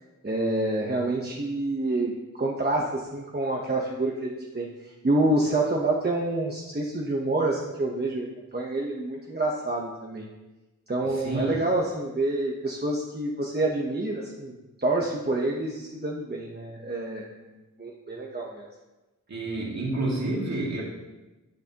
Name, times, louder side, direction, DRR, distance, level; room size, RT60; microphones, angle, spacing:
voice 1, 0.2-8.3 8.5-10.3 10.9-14.5 14.8-17.3 17.8-18.7, right 2 dB, 30° right, -2 dB, 1.0 m, -27 dB
voice 2, 11.1-11.6 19.3-20.8, right 2 dB, 60° right, -4 dB, 2.4 m, -29 dB
10.5 x 9.0 x 2.9 m, 1.1 s
wide cardioid pair, 95°, 31 cm